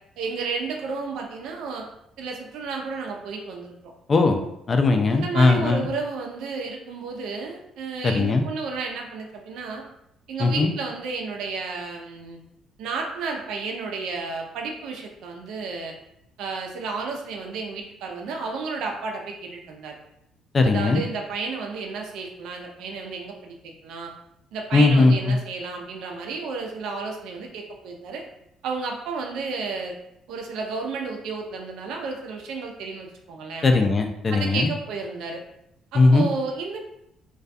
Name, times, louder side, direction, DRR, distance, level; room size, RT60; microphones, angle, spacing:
voice 1, 0.2-1.9 2.2-3.9 5.1-9.8 10.3-12.4 12.8-15.9 16.4-20.0 20.6-23.6 23.8-24.1 24.5-28.2 28.6-30.0 30.3-33.7 34.3-35.4 35.9-36.8, right 4 dB, 80° right, 1 dB, 0.5 m, -32 dB
voice 2, 4.1-4.4 4.7-5.9 8.0-8.4 10.4-10.7 20.5-21.0 24.7-25.4 33.6-34.7 35.9-36.3, left 3 dB, 35° left, 5 dB, 0.3 m, -19 dB
2.3 x 2.2 x 2.6 m, 0.79 s
cardioid pair, 110°, 0 cm